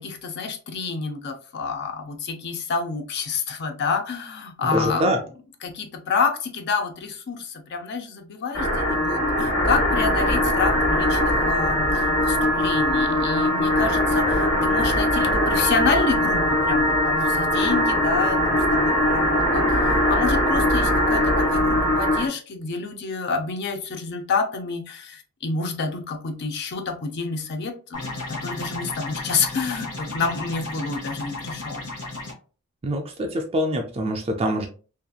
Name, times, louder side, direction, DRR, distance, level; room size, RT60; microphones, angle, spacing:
voice 1, 0.0-5.1 5.6-31.8, left 4 dB, 50° left, 6 dB, 0.5 m, -28 dB
voice 2, 4.7-5.2 32.8-34.7, equal, 25° right, 3 dB, 0.3 m, -24 dB
sound 1, 8.5-22.3, left 1 dB, 70° left, 1.1 m, -21 dB
sound 2, 27.9-32.3, left 2 dB, 90° left, 1.0 m, -33 dB
2.7 x 2.4 x 2.2 m, 0.38 s
head